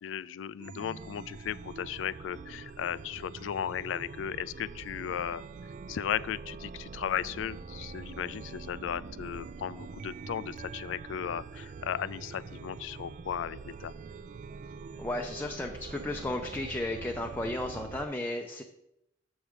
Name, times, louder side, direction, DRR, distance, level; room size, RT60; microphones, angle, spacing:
voice 1, 0.0-5.4 5.9-13.9, left 9 dB, 80° left, 18 dB, 0.3 m, -36 dB
Chime, 0.6-18.0, right 4 dB, 40° right, 0.3 m, -44 dB
voice 2, 15.0-18.6, left 1 dB, 10° left, 2 dB, 0.6 m, -34 dB
7.2 x 6.4 x 5.1 m, 0.82 s
head